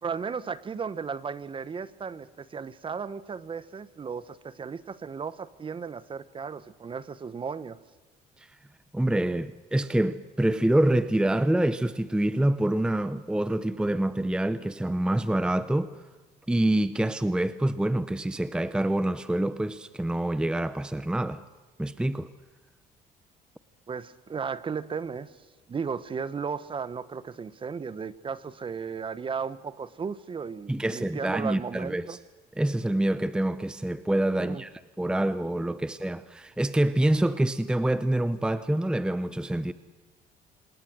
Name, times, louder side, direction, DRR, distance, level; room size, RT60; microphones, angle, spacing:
voice 1, 0.0-7.8 23.9-25.3 25.7-32.2 34.4-34.6, right 6 dB, 30° right, 1.0 m, -35 dB
voice 2, 8.9-15.9 16.5-21.4 21.8-22.3 30.7-32.2 32.6-39.7, right 1 dB, 5° right, 0.7 m, -26 dB
27.0 x 20.0 x 6.3 m
cardioid pair, 110°, 17 cm